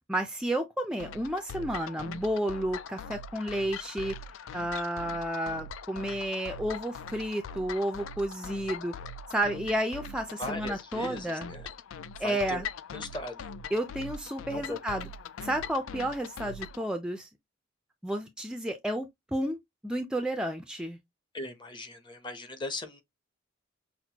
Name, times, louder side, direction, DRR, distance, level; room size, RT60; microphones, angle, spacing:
voice 1, 0.1-4.2 4.5-8.9 9.3-11.5 12.2-12.6 13.7-15.1 15.4-17.3 18.0-19.6 19.8-21.0, right 1 dB, 5° right, 0.4 m, -31 dB
sound 1, 1.0-16.8, left 4 dB, 80° left, 0.4 m, -42 dB
voice 2, 10.4-11.6 12.2-12.6 12.9-13.5 14.5-14.8 21.3-23.0, left 2 dB, 25° left, 0.7 m, -38 dB
5.9 x 2.1 x 2.8 m
head